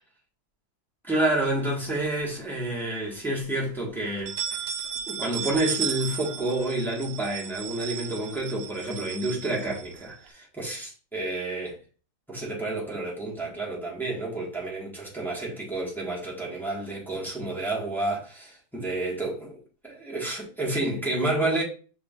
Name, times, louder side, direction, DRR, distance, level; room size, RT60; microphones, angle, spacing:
voice 1, 1.1-4.6 5.1-11.8 12.3-21.6, right 2 dB, ahead, 1.3 m, -29 dB
sound 1, 1.6-2.5 2.9-3.0 3.4-3.5 4.1-10.3, right 9 dB, 90° right, 1.3 m, -35 dB
6.2 x 3.4 x 2.4 m
omnidirectional pair, 1.8 m